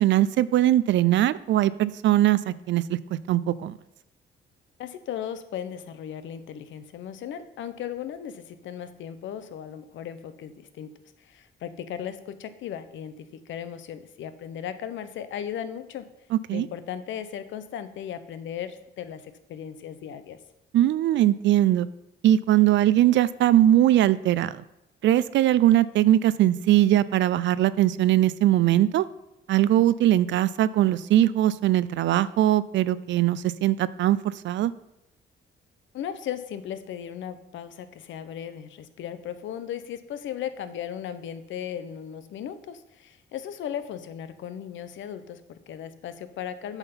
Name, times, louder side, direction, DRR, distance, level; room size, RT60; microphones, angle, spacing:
voice 1, 0.0-3.0 3.3-3.7 16.3-16.7 20.7-21.9 22.2-24.6 25.0-29.1 29.5-34.7, right 13 dB, 70° right, 17 dB, 0.4 m, -21 dB
voice 2, 4.8-10.9 11.2-16.1 16.5-20.4 35.9-46.8, left 9 dB, 75° left, 12 dB, 0.8 m, -36 dB
8.0 x 5.7 x 5.6 m, 0.89 s
cardioid pair, 90°, 20 cm